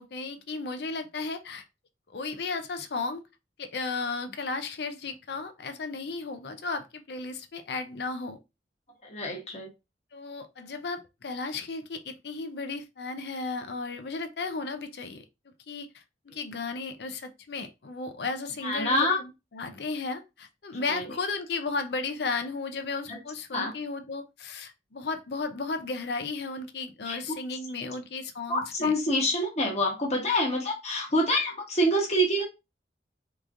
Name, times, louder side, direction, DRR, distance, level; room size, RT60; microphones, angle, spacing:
voice 1, 0.0-1.6 2.1-3.2 3.6-8.4 10.1-15.2 15.7-28.9, left 3 dB, 65° left, 0.5 m, -34 dB
voice 2, 9.0-9.7 18.6-19.2 20.8-21.0 23.1-23.2 23.5-23.7 27.0-27.4 28.5-32.4, equal, 40° left, 1.0 m, -26 dB
3.5 x 3.0 x 2.5 m
head